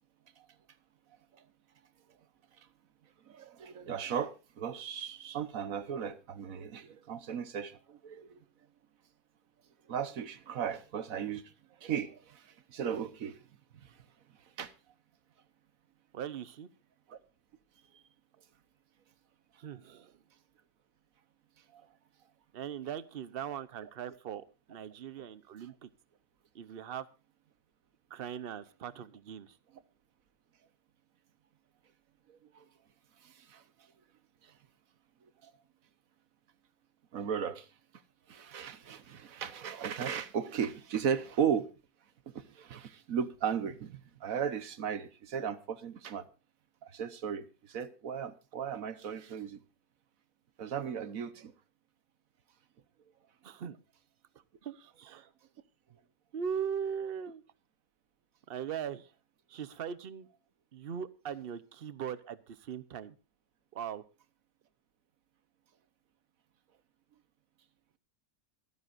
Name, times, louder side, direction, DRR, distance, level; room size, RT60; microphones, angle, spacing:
voice 1, 3.2-8.4 9.9-13.4 13.7-14.0 14.4-14.7 17.1-17.2 17.9-18.0 21.7-21.9 25.6-25.7 32.3-32.6 33.2-33.9 34.4-34.6 35.2-35.5 37.1-37.7 38.3-41.7 42.3-46.2 46.8-49.6 50.6-51.5, right 8 dB, 65° right, 1.4 m, -36 dB
voice 2, 16.1-16.7 19.6-20.1 22.5-25.9 26.5-27.1 28.1-29.6 53.4-53.8 54.6-55.3 56.3-57.4 58.5-59.1 59.5-60.3 60.7-63.2 63.7-64.0, right 8 dB, 45° right, 0.9 m, -40 dB
25.0 x 9.5 x 2.6 m
omnidirectional pair, 1.6 m